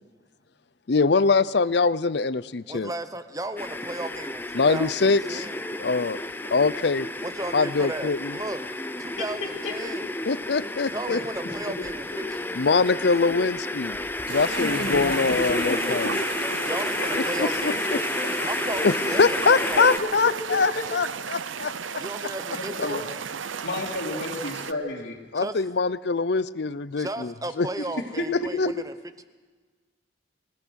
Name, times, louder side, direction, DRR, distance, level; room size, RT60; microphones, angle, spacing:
voice 1, 0.9-2.9 4.5-5.5 5.8-6.2 6.5-7.1 7.5-8.3 10.3-11.2 12.6-14.0 14.3-16.2 17.1-18.0 18.8-22.0 25.3-27.7 28.6-28.7, left 4 dB, 60° left, 17 dB, 0.6 m, -23 dB
voice 2, 2.7-5.9 7.2-8.6 9.0-10.2 10.9-13.1 16.6-17.8 18.5-20.2 22.0-23.0 24.2-24.5 25.3-25.5 27.0-29.2, right 2 dB, 20° right, 10 dB, 0.9 m, -35 dB
sound 1, 3.6-20.0, left 2 dB, 10° left, 0.6 m, -31 dB
voice 3, 14.3-16.4 20.5-20.6 22.5-23.0 23.6-25.2 27.8-27.9 28.2-28.3, left 2 dB, 75° left, -5 dB, 3.0 m, -32 dB
sound 2, 14.3-24.7, right 6 dB, 85° right, 0.8 m, -34 dB
27.5 x 18.0 x 6.4 m, 1.4 s
head